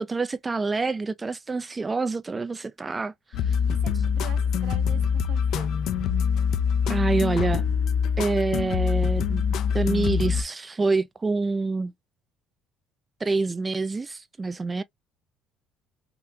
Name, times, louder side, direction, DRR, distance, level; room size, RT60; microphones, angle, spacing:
voice 1, 0.0-3.5 6.9-7.6 8.2-11.9 13.2-14.8, right 3 dB, 25° right, 0.3 m, -27 dB
sound 1, 3.3-10.4, left 7 dB, 65° left, 0.5 m, -24 dB
voice 2, 3.6-5.8, right 10 dB, 75° right, 0.9 m, -43 dB
3.6 x 2.3 x 2.7 m
supercardioid pair, 90°, 0 cm